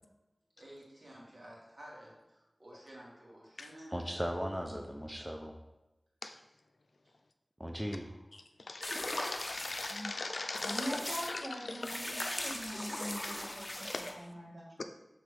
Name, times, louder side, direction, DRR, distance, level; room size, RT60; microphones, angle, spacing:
voice 1, 0.6-4.1 8.0-8.1 12.2-12.3, equal, 45° right, -5 dB, 2.5 m, -53 dB
voice 2, 3.9-5.5 7.6-8.0, equal, 5° right, 2 dB, 0.7 m, -37 dB
voice 3, 8.7-10.9 11.3-11.4 11.7-11.9 13.9-14.1, left 3 dB, 90° left, 6 dB, 0.5 m, -39 dB
sound 1, 8.8-10.0 10.6-11.3 11.8-14.2, left 1 dB, 35° left, 0.9 m, -39 dB
voice 4, 10.6-14.8, equal, 75° right, -5 dB, 2.2 m, -43 dB
6.6 x 4.0 x 5.1 m, 0.98 s
wide cardioid pair, 50°, 0 cm